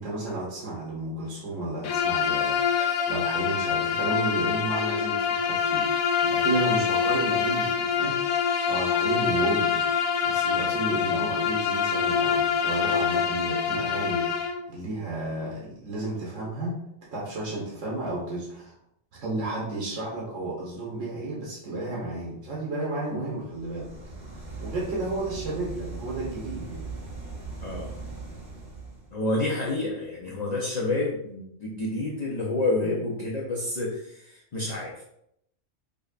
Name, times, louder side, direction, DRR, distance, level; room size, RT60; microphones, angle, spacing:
voice 1, 0.0-2.6 3.1-8.2 8.7-9.8 10.2-16.8 17.1-18.7 19.1-23.9 24.6-26.9 32.8-32.9, right 2 dB, 80° right, -4 dB, 1.2 m, -32 dB
Bowed string instrument, 1.8-14.6, left 7 dB, 85° left, 0.9 m, -25 dB
sound 1, 23.4-29.1, right 3 dB, 45° right, 1.5 m, -39 dB
voice 2, 27.6-27.9 29.1-35.0, left 2 dB, 45° left, -4 dB, 0.6 m, -29 dB
5.1 x 2.2 x 2.4 m, 0.75 s
omnidirectional pair, 1.3 m